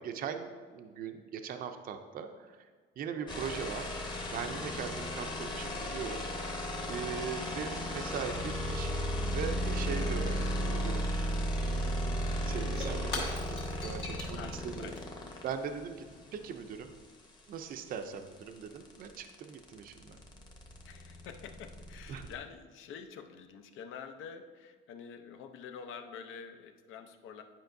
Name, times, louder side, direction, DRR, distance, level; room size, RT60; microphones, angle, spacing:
voice 1, 0.0-2.7 3.0-4.0 4.3-6.3 6.9-8.9 9.3-11.1 11.6-13.3 13.8-14.9 15.4-16.1 16.3-16.9 17.5-20.2 22.1-22.3, right 7 dB, 45° right, 7 dB, 0.5 m, -40 dB
sound 1, 3.3-15.5 17.6-17.7 18.0-22.4, equal, 20° left, 0.9 m, -35 dB
Shatter / Crushing, 12.6-17.0, left 3 dB, 60° left, 2.0 m, -44 dB
voice 2, 13.9-15.4 20.8-27.4, left 6 dB, 75° left, 7 dB, 0.6 m, -47 dB
10.5 x 5.1 x 2.6 m, 1.5 s
cardioid pair, 150°, 21 cm